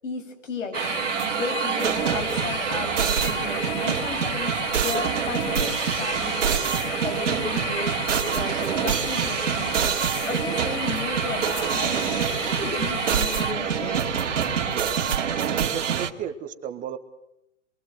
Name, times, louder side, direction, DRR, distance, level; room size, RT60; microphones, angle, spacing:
voice 1, 0.0-10.0 10.3-12.1 12.4-13.9, left 4 dB, 80° left, 6 dB, 7.6 m, -34 dB
sound 1, 0.7-13.5, left 12 dB, 50° left, 1.5 m, -36 dB
sound 2, 0.7-16.1, right 7 dB, 70° right, 2.8 m, -26 dB
sound 3, 1.8-15.2, left 5 dB, 30° left, 4.3 m, -42 dB
voice 2, 14.7-17.0, right 9 dB, 20° right, 8 dB, 1.5 m, -35 dB
27.5 x 23.0 x 8.1 m, 0.85 s
hypercardioid pair, 140°, 37 cm